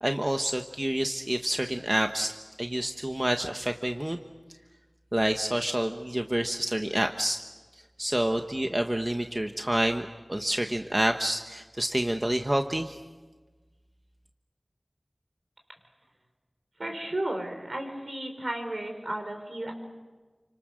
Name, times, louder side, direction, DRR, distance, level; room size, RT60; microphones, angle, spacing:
voice 1, 0.0-4.2 5.1-7.4 7.7-13.0, right 1 dB, 30° right, 5 dB, 1.2 m, -28 dB
voice 2, 16.8-19.7, right 1 dB, 65° right, 4 dB, 5.3 m, -33 dB
29.5 x 26.0 x 6.5 m, 1.3 s
wide cardioid pair, 45°, 0 cm